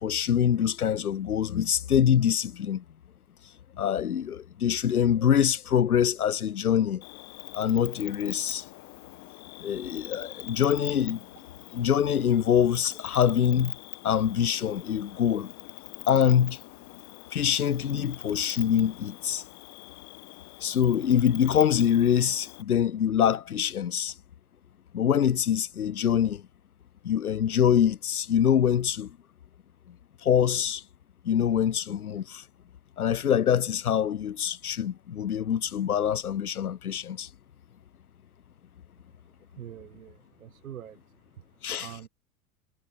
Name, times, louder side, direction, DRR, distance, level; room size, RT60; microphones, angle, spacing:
voice 1, 0.0-2.8 3.8-7.0 7.5-8.6 9.6-11.2 11.7-13.7 14.0-15.5 16.1-16.6 17.3-19.4 20.6-24.1 24.9-26.4 27.0-29.1 30.2-30.8 31.2-32.4 33.0-37.3 41.6-41.9, left 9 dB, 80° left, 0.7 m, -24 dB
Cricket, 7.0-22.6, left 20 dB, 40° left, 1.7 m, -43 dB
voice 2, 39.6-41.0 41.8-42.1, right 10 dB, 70° right, 1.9 m, -44 dB
figure-of-eight pair, 80°, 43 cm